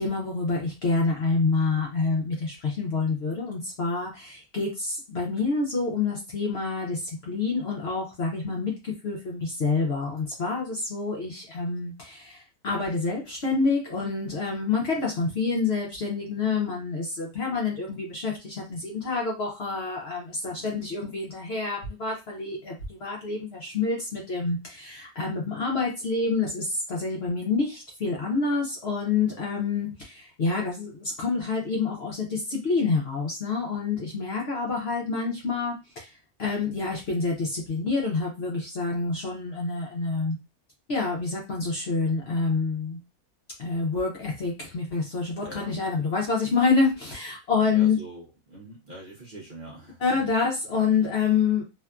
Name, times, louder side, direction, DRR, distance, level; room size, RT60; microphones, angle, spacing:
voice 1, 0.0-36.1 36.4-40.4 40.9-43.0 43.6-48.0 50.0-51.6, left 4 dB, 55° left, -2 dB, 0.8 m, -27 dB
voice 2, 20.4-20.9 45.4-45.8 47.7-50.2, right 1 dB, 45° right, -4 dB, 0.7 m, -44 dB
2.8 x 2.5 x 2.2 m, 0.27 s
omnidirectional pair, 1.6 m